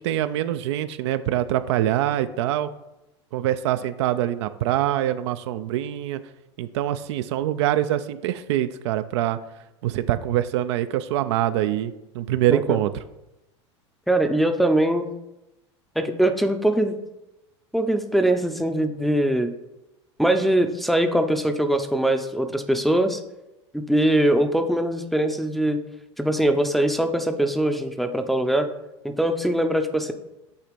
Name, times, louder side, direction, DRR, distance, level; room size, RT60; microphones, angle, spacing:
voice 1, 0.0-2.7 3.3-6.2 6.6-9.4 9.8-12.9, right 12 dB, 70° right, 12 dB, 0.4 m, -24 dB
voice 2, 14.1-15.1 16.0-16.9 17.7-19.5 20.2-23.2 23.7-25.8 26.2-28.7 29.0-30.1, right 1 dB, ahead, 6 dB, 0.5 m, -22 dB
8.2 x 2.9 x 5.0 m, 0.93 s
hypercardioid pair, 105°, 15 cm